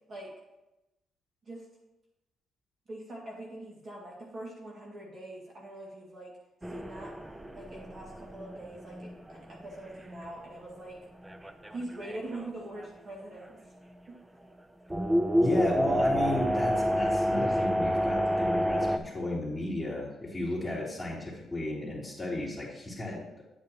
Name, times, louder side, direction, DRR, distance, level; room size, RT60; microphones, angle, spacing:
voice 1, 2.9-6.3 6.7-7.1 7.5-11.0 11.7-13.6 14.1-14.2, right 1 dB, 40° right, -3 dB, 2.1 m, -43 dB
sound 1, 6.6-10.3 10.7-10.8 11.2-12.9 13.4-13.5 14.9-19.0, equal, 10° right, 0.5 m, -29 dB
voice 2, 15.4-23.4, left 1 dB, 5° left, -7 dB, 3.1 m, -33 dB
9.0 x 8.5 x 3.0 m, 0.97 s
cardioid pair, 90°, 0 cm